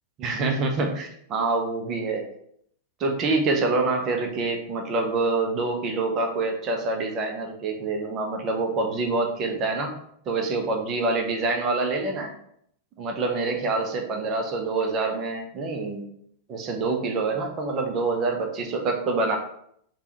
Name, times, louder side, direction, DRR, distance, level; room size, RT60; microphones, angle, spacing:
voice 1, 0.2-2.2 3.0-10.0 10.3-12.3 13.0-16.0 16.5-19.4, right 3 dB, 35° right, 3 dB, 0.5 m, -26 dB
3.3 x 2.2 x 2.9 m, 0.69 s
figure-of-eight pair, 90°, 0 cm